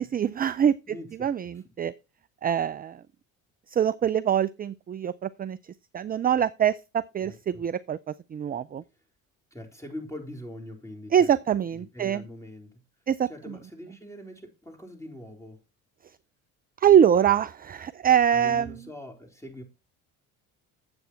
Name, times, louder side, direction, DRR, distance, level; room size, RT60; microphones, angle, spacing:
voice 1, 0.0-1.0 1.2-1.9 2.4-3.0 3.7-5.6 5.9-8.0 8.3-8.8 11.1-12.2 13.1-13.5 16.8-18.8, right 9 dB, 20° right, 0.4 m, -24 dB
voice 2, 0.9-1.7 7.2-7.6 9.5-11.4 11.7-12.8 13.3-15.6 18.3-19.6, left 1 dB, 5° left, 4.1 m, -43 dB
8.8 x 8.0 x 4.4 m
hypercardioid pair, 60°, 44 cm